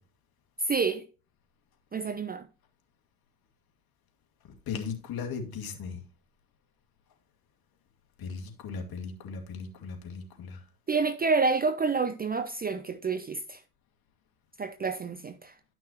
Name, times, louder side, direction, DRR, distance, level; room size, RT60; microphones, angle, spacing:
voice 1, 0.7-1.0 1.9-2.5 10.9-13.6 14.6-15.5, right 4 dB, 20° right, 0.6 m, -28 dB
voice 2, 4.7-6.0 8.2-10.6, left 5 dB, 50° left, 2.3 m, -37 dB
11.5 x 6.0 x 2.9 m
hypercardioid pair, 80°, 47 cm